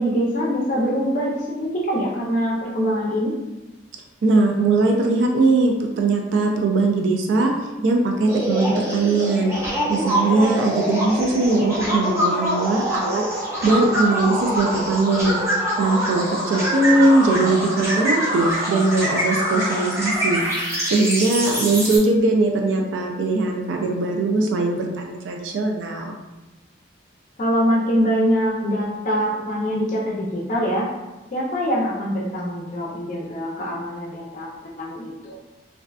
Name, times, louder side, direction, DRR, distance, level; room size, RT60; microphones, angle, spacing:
voice 1, 0.0-3.3 16.5-16.9 27.4-30.9 31.3-35.4, equal, 40° left, -3 dB, 0.4 m, -24 dB
voice 2, 4.2-7.5 7.8-9.5 9.9-13.2 13.6-15.4 15.8-20.4 20.9-26.2, right 2 dB, 85° right, 2 dB, 0.3 m, -20 dB
sound 1, 8.3-22.0, equal, 15° right, 0.5 m, -24 dB
2.5 x 2.2 x 2.3 m, 1.1 s
head